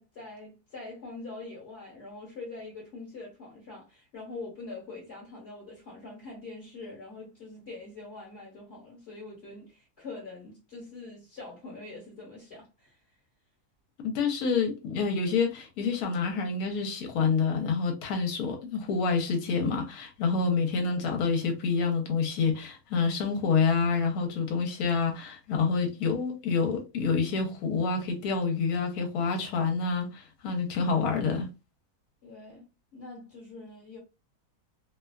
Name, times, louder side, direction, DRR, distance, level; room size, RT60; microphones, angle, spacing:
voice 1, 0.0-13.0 25.8-26.0 32.2-32.7 32.9-34.0, left 3 dB, 50° left, 1.2 m, -44 dB
voice 2, 14.0-31.5, left 5 dB, 75° left, 1.2 m, -27 dB
2.7 x 2.3 x 2.2 m
omnidirectional pair, 1.6 m